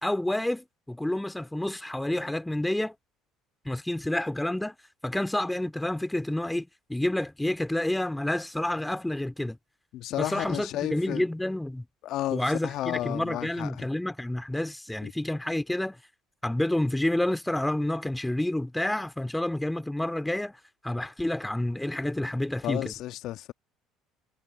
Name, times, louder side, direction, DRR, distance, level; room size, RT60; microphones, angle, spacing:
voice 1, 0.0-2.9 3.6-4.8 5.0-9.6 10.2-11.8 12.3-16.0 16.4-20.6 20.8-22.9, left 1 dB, 5° left, 2.6 m, -29 dB
voice 2, 9.9-11.2 12.0-13.9 15.0-15.1 22.6-23.5, left 14 dB, 60° left, 1.6 m, -32 dB
figure-of-eight pair, 60°, 0 cm